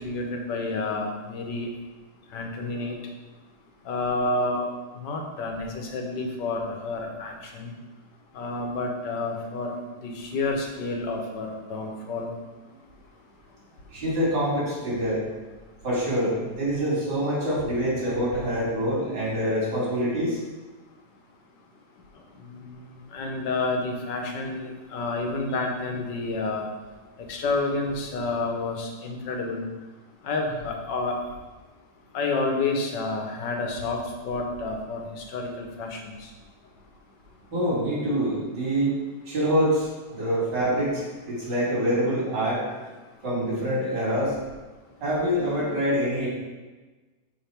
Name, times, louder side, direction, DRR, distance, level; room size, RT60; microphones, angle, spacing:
voice 1, 0.0-1.7 2.3-3.0 3.9-4.7 5.0-7.7 8.3-9.7 10.0-12.3 17.6-17.7 22.5-22.7 23.1-26.7 27.3-29.7 30.2-31.2 32.1-36.1 45.3-45.7, left 3 dB, 90° left, 2 dB, 1.6 m, -29 dB
voice 2, 13.9-15.2 15.8-20.4 37.5-38.9 39.3-42.7 43.2-44.3 45.0-46.3, equal, 85° right, -7 dB, 3.1 m, -25 dB
5.5 x 5.2 x 4.4 m, 1.3 s
omnidirectional pair, 1.8 m